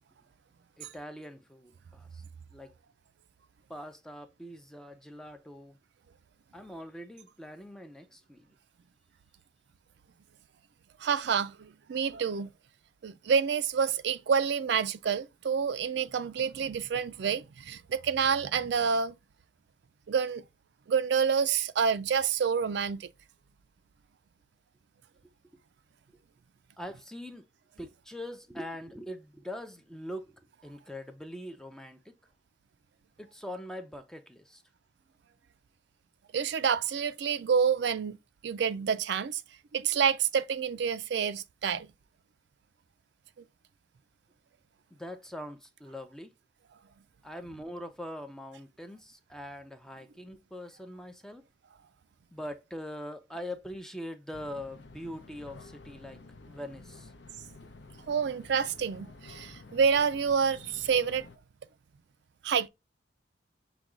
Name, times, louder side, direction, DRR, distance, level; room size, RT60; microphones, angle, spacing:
voice 1, 0.8-2.2 2.5-2.7 3.7-5.8 6.5-8.6 25.2-25.6 26.8-27.5 27.8-32.2 33.2-34.6 44.9-46.3 47.2-51.4 52.3-56.2 56.5-57.1, left 1 dB, 5° left, 0.4 m, -43 dB
voice 2, 11.0-12.5 13.0-19.1 20.1-20.4 20.9-23.1 36.3-38.2 38.4-39.4 39.7-41.9 58.1-61.3 62.4-62.7, right 6 dB, 60° right, 0.4 m, -28 dB
sound 1, 54.3-61.4, left 3 dB, 65° left, 0.6 m, -51 dB
5.9 x 2.3 x 3.7 m
head